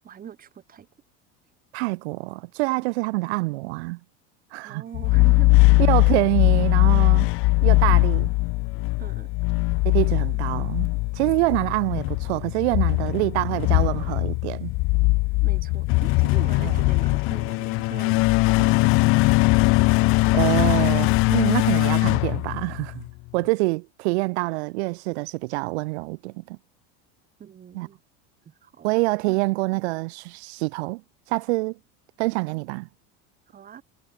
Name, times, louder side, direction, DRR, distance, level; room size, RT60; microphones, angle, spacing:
voice 1, 0.0-0.9 2.8-2.9 4.6-5.6 9.0-9.3 15.4-18.2 18.5-19.5 27.4-28.0 28.4-28.9 29.3-29.4 33.5-33.8, right 9 dB, 25° right, 2.8 m, -42 dB
voice 2, 1.7-4.0 4.5-4.8 5.9-7.3 7.6-8.3 9.8-14.7 16.6-16.8 20.3-23.0 23.3-26.6 27.7-27.9 28.8-31.0 31.3-31.8 32.2-32.9, right 24 dB, 90° right, 0.7 m, -26 dB
sound 1, 4.9-23.1, left 24 dB, 45° left, 0.4 m, -20 dB
cardioid pair, 145°, 32 cm